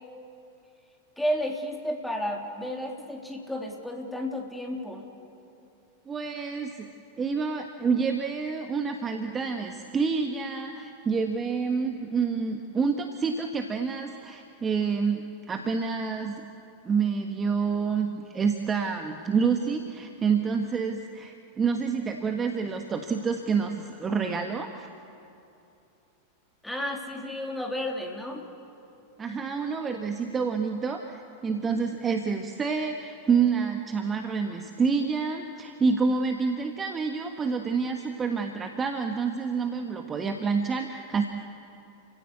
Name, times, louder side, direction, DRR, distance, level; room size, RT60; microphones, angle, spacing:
voice 1, 1.2-5.1 26.6-28.5, equal, 5° left, 0 dB, 3.4 m, -32 dB
voice 2, 6.1-16.4 16.8-24.9 29.2-41.3, right 5 dB, 20° right, 5 dB, 1.4 m, -28 dB
29.5 x 16.5 x 8.3 m, 2.7 s
figure-of-eight pair, 90°, 0 cm